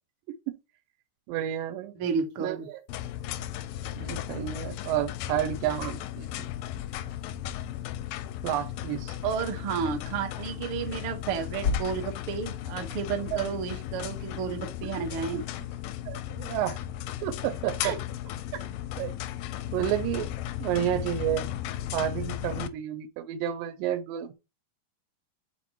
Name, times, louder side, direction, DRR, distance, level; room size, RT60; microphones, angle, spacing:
voice 1, 1.3-1.9 2.4-2.8 4.0-6.3 8.4-9.2 13.3-13.4 15.0-15.1 15.3-15.4 16.1-16.8 17.2-17.9 19.0-19.1 19.7-20.3 20.6-21.5 21.9-24.3, right 11 dB, 85° right, 2.4 m, -30 dB
voice 2, 1.9-2.7 9.2-15.4 17.8-18.0 18.5-18.6, right 6 dB, 55° right, 1.5 m, -32 dB
sound 1, 2.2-2.3 3.3-6.0 6.3-9.0 9.3-9.4 9.7-14.1 14.4-15.1, left 4 dB, 70° left, 0.9 m, -40 dB
sound 2, 2.9-22.7, left 12 dB, 85° left, 2.4 m, -36 dB
12.0 x 4.2 x 2.9 m
omnidirectional pair, 4.0 m